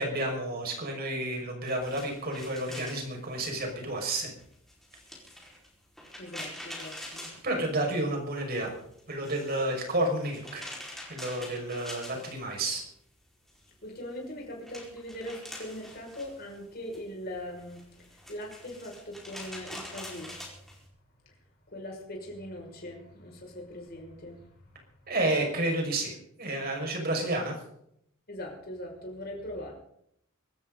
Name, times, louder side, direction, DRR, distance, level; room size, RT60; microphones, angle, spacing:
voice 1, 0.0-4.3 7.4-8.7 9.1-10.6 11.1-12.8 25.1-26.1 26.4-27.6, right 1 dB, 45° right, 2 dB, 5.7 m, -30 dB
sound 1, 1.7-8.2 8.5-12.9 13.2-20.8, left 1 dB, ahead, 4.8 m, -46 dB
voice 2, 6.2-7.3 13.8-20.3 21.7-24.6 28.3-29.7, left 1 dB, 45° left, 0 dB, 6.0 m, -41 dB
24.5 x 13.5 x 4.0 m, 0.72 s
head